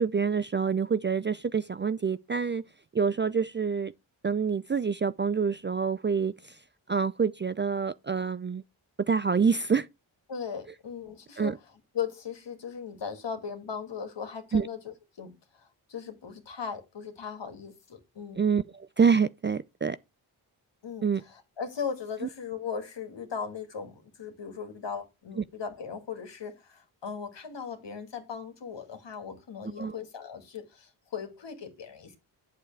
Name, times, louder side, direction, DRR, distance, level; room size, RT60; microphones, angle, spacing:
voice 1, 0.0-2.6 2.9-3.9 4.2-6.6 6.9-8.6 9.0-9.9 11.4-11.6 14.5-14.7 18.4-20.0 21.0-21.2 25.4-25.5 29.8-30.0, right 6 dB, 25° right, 0.4 m, -27 dB
voice 2, 10.3-11.5 11.9-15.3 15.6-18.4 20.8-32.2, left 6 dB, 60° left, 2.3 m, -38 dB
8.5 x 7.4 x 3.3 m
supercardioid pair, 45°, 49 cm